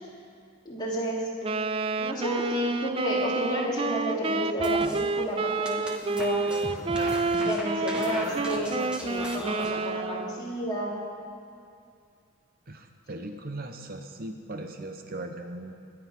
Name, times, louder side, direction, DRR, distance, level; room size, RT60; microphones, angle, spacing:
voice 1, 0.6-1.3 2.0-6.5 7.4-11.0, equal, 20° left, -5 dB, 3.0 m, -31 dB
Wind instrument woodwind instrument, 1.4-10.5, right 3 dB, 25° right, 0.3 m, -29 dB
sound 1, 4.6-5.0 5.5-9.7, equal, 5° right, 1.5 m, -38 dB
voice 2, 12.7-15.7, right 2 dB, 45° right, 6 dB, 0.8 m, -38 dB
23.0 x 10.0 x 5.9 m, 2.4 s
head